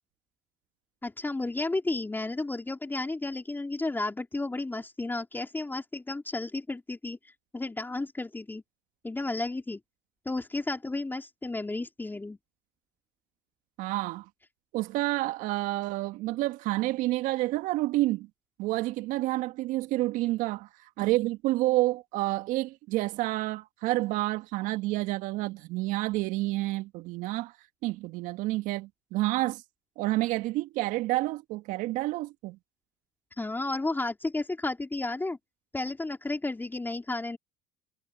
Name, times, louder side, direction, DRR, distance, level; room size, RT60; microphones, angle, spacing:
voice 1, 1.0-7.2 7.5-8.6 9.0-9.8 10.3-12.4 33.4-35.4 35.7-37.4, left 2 dB, 15° left, 3.4 m, -32 dB
voice 2, 13.8-14.3 14.7-18.3 18.6-27.5 27.8-29.6 30.0-32.6, right 18 dB, 65° right, 1.6 m, -29 dB
hypercardioid pair, 70°, 14 cm